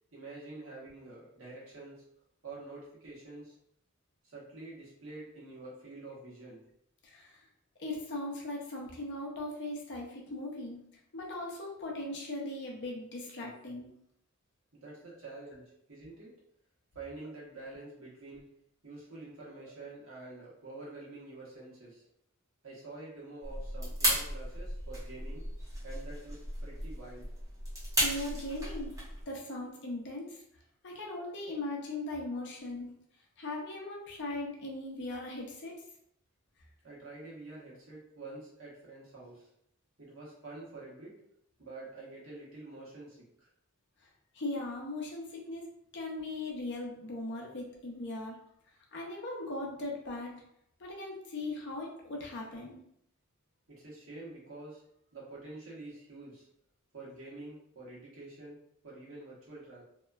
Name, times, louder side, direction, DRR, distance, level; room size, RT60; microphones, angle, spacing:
voice 1, 0.1-2.0 2.4-3.6 4.3-6.6 14.7-16.3 16.9-18.5 18.8-22.0 22.6-25.4 25.8-27.3 36.8-39.5 40.0-41.2 41.6-43.5 53.7-54.8 55.1-56.5 56.9-58.5 58.8-59.8, right 2 dB, 70° right, -5 dB, 1.0 m, -47 dB
voice 2, 7.0-7.4 7.8-10.8 11.1-13.9 28.0-29.0 29.3-30.4 30.8-32.9 33.4-35.8 44.3-45.7 45.9-48.4 48.9-50.4 50.8-52.8, left 2 dB, 60° left, -1 dB, 0.6 m, -39 dB
sound 1, 23.4-29.2, equal, 15° right, 0.9 m, -35 dB
2.8 x 2.2 x 2.3 m, 0.72 s
head